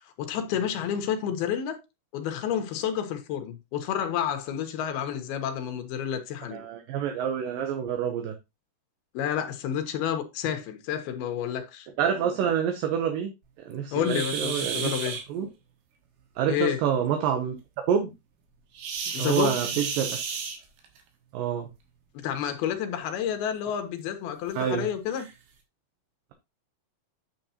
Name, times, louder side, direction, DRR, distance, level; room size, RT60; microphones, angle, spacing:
voice 1, 0.0-1.8 2.1-6.6 9.1-11.9 13.9-15.2 16.5-16.8 19.1-19.6 22.1-25.3, left 9 dB, 80° left, 3.0 m, -30 dB
voice 2, 6.5-8.3 12.0-13.3 13.7-14.9 15.3-15.5 16.4-17.6 17.9-18.1 19.2-20.2 21.3-21.7 24.6-24.9, right 8 dB, 75° right, 2.4 m, -27 dB
sound 1, 14.0-15.2 18.8-21.0 22.2-22.4 23.0-23.1 23.7-23.8 24.6-24.7 25.1-25.3, right 6 dB, 90° right, 3.4 m, -33 dB
9.1 x 6.4 x 2.8 m
omnidirectional pair, 4.4 m